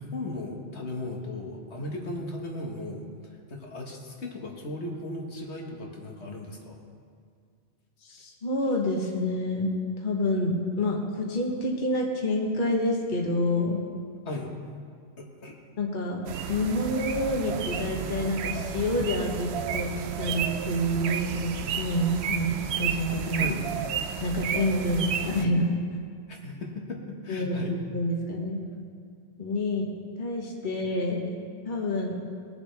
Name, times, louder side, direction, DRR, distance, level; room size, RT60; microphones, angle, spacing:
voice 1, 0.0-6.8 14.3-14.5 15.2-15.6 23.4-23.7 26.3-27.7, left 2 dB, 75° left, 0 dB, 1.8 m, -36 dB
voice 2, 8.0-9.7 10.0-13.8 15.8-16.2 16.5-23.5 24.2-25.8 27.3-28.6 29.4-29.9 30.2-31.2 31.6-32.2, left 1 dB, 45° left, 0 dB, 1.4 m, -28 dB
sound 1, 16.3-25.5, right 7 dB, 70° right, 0.8 m, -32 dB
21.0 x 7.3 x 3.4 m, 2.1 s
omnidirectional pair, 1.1 m